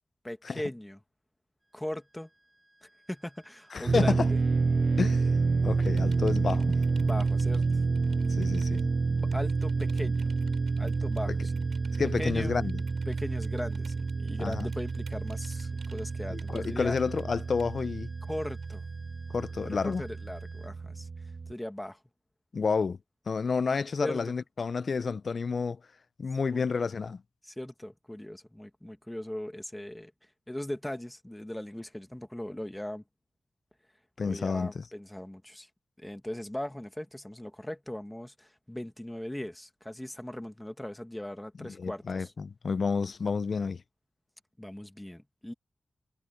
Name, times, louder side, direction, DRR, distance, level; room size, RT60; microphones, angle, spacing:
voice 1, 0.2-1.0 1.7-2.3 2.8-4.4 6.9-7.8 9.2-10.3 10.8-11.6 12.2-12.5 13.1-17.0 18.3-18.8 19.7-21.1 21.5-22.0 24.0-24.3 26.5-26.7 27.4-30.1 30.5-33.0 34.2-35.7 36.0-42.3 44.6-45.5, left 1 dB, 10° left, 1.9 m, -39 dB
sound 1, 1.6-20.7, right 1 dB, 15° right, 7.8 m, -58 dB
voice 2, 3.7-4.3 5.0-5.3 5.6-6.7 8.3-8.9 11.3-11.4 11.9-12.8 14.4-14.7 16.3-18.1 19.3-20.0 22.5-23.0 23.3-25.8 26.2-27.2 34.2-34.8 41.6-43.8, left 5 dB, 60° left, 0.6 m, -30 dB
sound 2, 3.9-21.5, right 4 dB, 55° right, 0.4 m, -29 dB
sound 3, 5.8-19.5, right 6 dB, 80° right, 7.4 m, -57 dB
cardioid pair, 70°, 0 cm